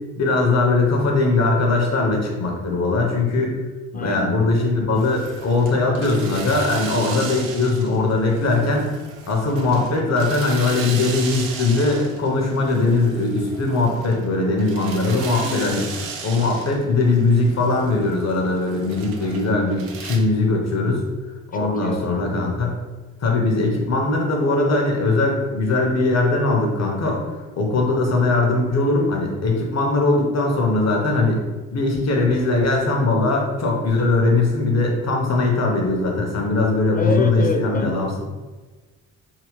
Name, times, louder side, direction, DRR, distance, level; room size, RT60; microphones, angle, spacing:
voice 1, 0.1-3.5 3.9-8.9 9.3-15.9 16.2-21.0 21.5-22.8 23.2-27.2 27.5-31.4 31.7-38.1, left 3 dB, 45° left, 0 dB, 1.1 m, -20 dB
voice 2, 3.9-4.3 15.4-15.9 21.5-22.2 36.9-38.3, left 2 dB, 25° left, 5 dB, 0.5 m, -28 dB
sound 1, 5.0-20.2, right 5 dB, 70° right, 0.7 m, -36 dB
3.8 x 2.8 x 3.2 m, 1.3 s
hypercardioid pair, 50°, 35 cm